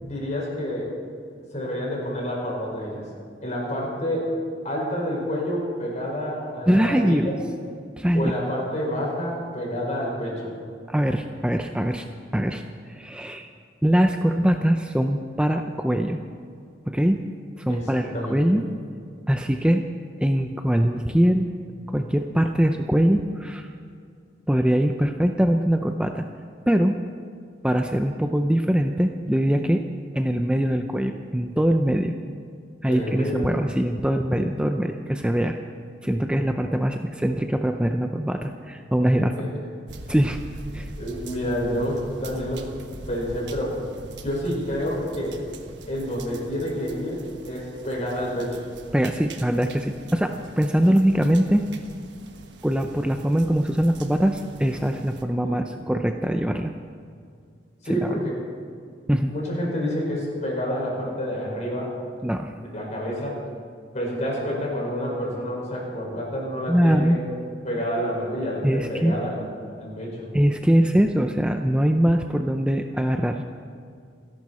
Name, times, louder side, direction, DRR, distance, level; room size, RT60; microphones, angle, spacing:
voice 1, 0.0-0.9 1.5-3.1 3.4-4.3 4.6-7.3 8.1-10.5 17.7-18.6 32.9-33.5 39.4-39.5 41.0-42.6 43.1-43.8 44.2-45.4 45.9-48.6 55.4-55.6 57.8-58.3 59.3-61.9 62.7-63.4 63.9-67.2 67.6-69.4 69.7-70.3, equal, 40° left, -3 dB, 5.4 m, -28 dB
voice 2, 6.7-7.4 8.0-8.3 10.9-12.1 12.3-13.5 13.8-16.2 16.9-17.2 17.6-18.6 19.3-19.8 20.2-21.5 21.9-23.7 24.5-26.2 26.7-27.0 27.6-29.8 30.1-32.1 32.8-35.6 36.0-39.3 40.1-40.4 40.7-40.9 48.9-51.6 52.6-56.7 57.9-58.0 59.1-59.3 62.2-62.5 66.7-67.2 68.6-69.1 70.3-73.4, equal, 5° right, 5 dB, 0.5 m, -22 dB
sound 1, 39.9-55.2, right 2 dB, 70° right, 1.3 m, -42 dB
29.5 x 11.0 x 4.2 m, 2.2 s
head